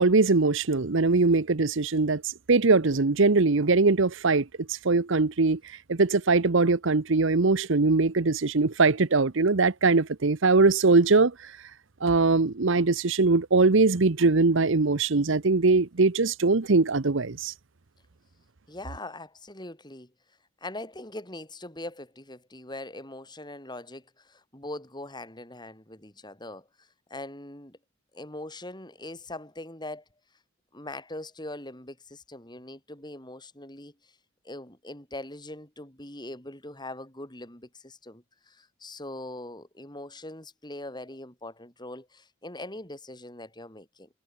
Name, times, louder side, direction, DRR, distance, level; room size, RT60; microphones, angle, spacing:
voice 1, 0.0-5.6 5.9-11.3 12.0-17.5, right 3 dB, 60° right, 0.9 m, -22 dB
voice 2, 18.7-20.1 20.6-27.8 28.1-30.0 30.7-33.9 34.4-44.1, left 1 dB, 20° left, 6.7 m, -41 dB
head